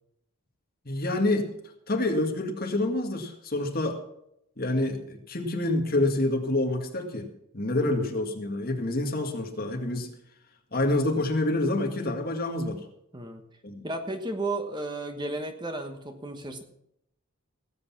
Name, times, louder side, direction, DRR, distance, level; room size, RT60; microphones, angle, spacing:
voice 1, 0.9-1.5 1.9-4.0 4.6-7.3 7.5-10.1 10.7-12.9 13.6-13.9, left 2 dB, 45° left, 3 dB, 2.1 m, -27 dB
voice 2, 13.8-16.6, right 2 dB, 20° right, 5 dB, 1.2 m, -33 dB
18.0 x 8.1 x 6.0 m, 0.77 s
head